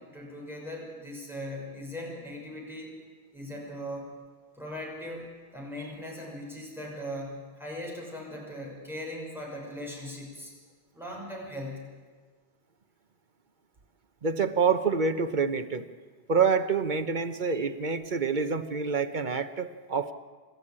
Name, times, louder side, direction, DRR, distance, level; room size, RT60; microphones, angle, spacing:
voice 1, 0.0-3.0 3.3-4.2 4.5-10.5 10.9-11.9, left 1 dB, ahead, -2 dB, 5.9 m, -39 dB
voice 2, 14.2-15.9 16.3-20.1, right 5 dB, 50° right, 9 dB, 1.2 m, -27 dB
26.5 x 12.5 x 8.8 m, 1.5 s
omnidirectional pair, 1.1 m